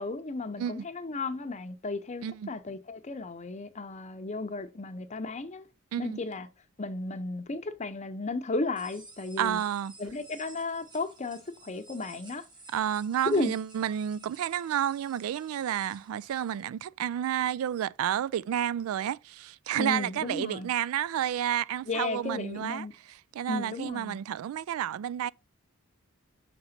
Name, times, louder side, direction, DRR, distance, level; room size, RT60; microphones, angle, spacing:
voice 1, 0.0-5.7 6.0-6.5 6.8-9.6 10.0-12.5 13.3-13.5 19.8-20.7 21.9-22.9 23.5-24.2, left 3 dB, 35° left, 0.7 m, -34 dB
sound 1, 8.8-16.6, right 2 dB, 20° right, 1.6 m, -54 dB
voice 2, 9.4-9.9 12.7-22.9 23.3-25.3, right 10 dB, 90° right, 0.3 m, -30 dB
5.9 x 3.9 x 5.7 m
head